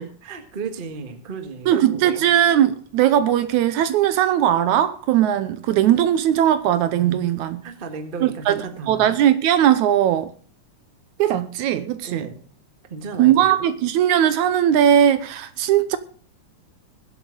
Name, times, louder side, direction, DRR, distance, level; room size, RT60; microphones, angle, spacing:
voice 1, 0.0-2.3 7.6-9.1 12.0-12.4 12.9-13.7, right 4 dB, 30° right, 0.9 m, -34 dB
voice 2, 1.7-7.6 8.2-10.3 11.2-12.3 13.2-16.0, right 10 dB, 80° right, 2.0 m, -19 dB
21.0 x 8.1 x 3.9 m
omnidirectional pair, 3.6 m